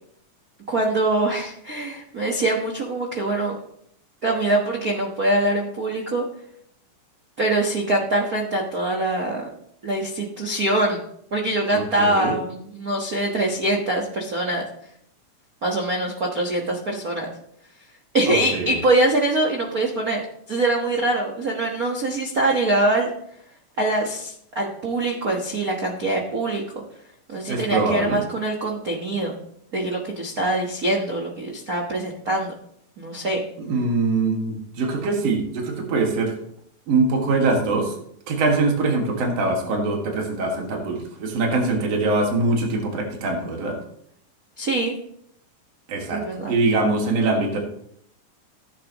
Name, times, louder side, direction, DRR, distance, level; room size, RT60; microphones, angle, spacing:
voice 1, 0.7-3.5 4.2-6.2 7.4-9.4 9.8-11.0 11.3-14.6 15.6-17.3 18.1-20.2 20.5-23.1 23.8-26.8 27.3-29.3 29.7-32.5 33.0-33.4 44.6-44.9 46.1-46.5, right 2 dB, 70° right, -1 dB, 0.8 m, -23 dB
voice 2, 11.7-12.4 18.3-18.8 27.5-28.2 33.6-36.3 36.9-38.0 38.3-43.8 45.9-47.6, right 3 dB, 55° right, 1 dB, 2.9 m, -23 dB
15.0 x 9.1 x 3.0 m, 0.69 s
omnidirectional pair, 3.8 m